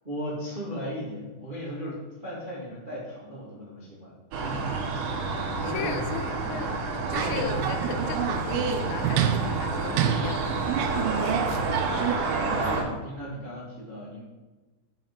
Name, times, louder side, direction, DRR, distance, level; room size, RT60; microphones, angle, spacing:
voice 1, 0.0-6.0 7.2-7.5 11.0-14.2, equal, 45° right, -6 dB, 0.6 m, -37 dB
sound 1, 4.3-12.8, right 3 dB, 75° right, 3.6 m, -29 dB
voice 2, 5.6-11.4, left 8 dB, 80° left, 7 dB, 2.8 m, -37 dB
sound 2, 7.1-12.2, right 9 dB, 90° right, 3.1 m, -28 dB
7.5 x 7.1 x 5.4 m, 1.2 s
omnidirectional pair, 5.1 m